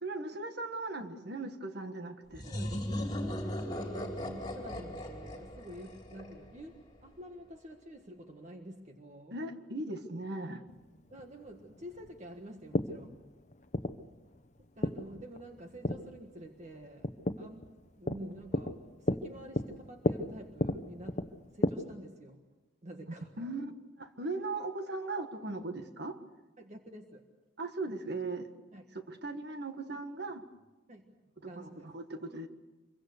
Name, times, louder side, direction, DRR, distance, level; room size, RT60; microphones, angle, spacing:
voice 1, 0.0-2.4 9.3-10.6 23.4-23.7 24.0-26.2 27.6-28.5 28.9-30.4 31.6-32.5, right 2 dB, 55° right, 7 dB, 1.7 m, -38 dB
sound 1, 2.3-6.9, left 1 dB, 20° left, 3.5 m, -38 dB
voice 2, 2.4-9.4 11.1-13.2 14.6-21.2 21.5-22.4 22.8-23.5 26.6-27.3 28.7-28.8 30.9-31.0 31.4-31.8, right 1 dB, 35° right, 4 dB, 1.5 m, -48 dB
sound 2, 10.7-21.7, left 1 dB, 35° left, 0.9 m, -35 dB
26.0 x 23.0 x 6.7 m, 1.2 s
head